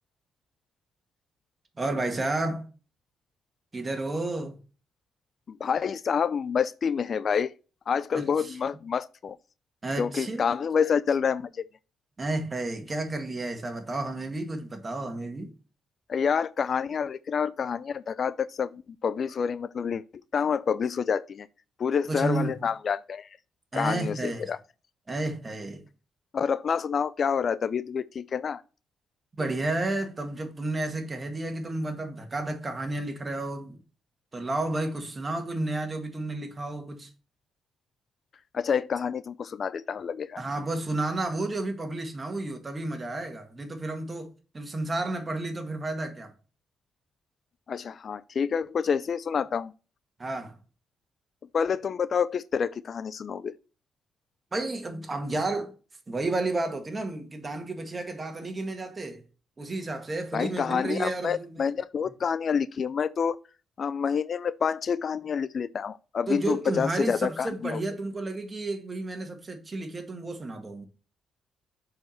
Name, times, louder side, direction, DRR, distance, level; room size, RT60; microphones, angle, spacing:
voice 1, 1.8-2.7 3.7-4.6 8.1-8.6 9.8-10.5 12.2-15.5 22.1-22.6 23.7-24.5 25.1-25.8 29.4-33.8 34.3-37.1 40.4-46.3 50.2-50.6 54.5-55.7 56.1-59.2 59.6-61.6 66.3-70.9, right 2 dB, 30° right, 1.8 m, -31 dB
voice 2, 5.5-7.5 7.9-9.4 10.0-11.6 16.1-20.0 20.3-21.5 21.8-23.3 23.7-24.6 26.3-28.6 38.5-40.4 47.7-49.7 51.5-53.5 60.3-63.4 63.8-67.8, left 6 dB, 55° left, 0.3 m, -28 dB
6.4 x 4.7 x 4.4 m
supercardioid pair, 70°, 0 cm